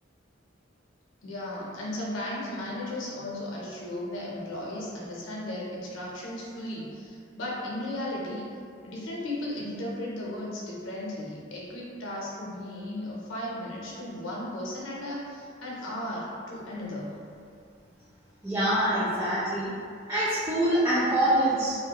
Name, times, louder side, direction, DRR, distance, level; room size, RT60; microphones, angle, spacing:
voice 1, 1.2-8.5 8.8-17.1, left 1 dB, 80° left, -4 dB, 0.6 m, -35 dB
voice 2, 18.4-19.7 20.1-21.8, right 1 dB, 15° right, -10 dB, 0.3 m, -25 dB
2.8 x 2.1 x 2.2 m, 2.3 s
head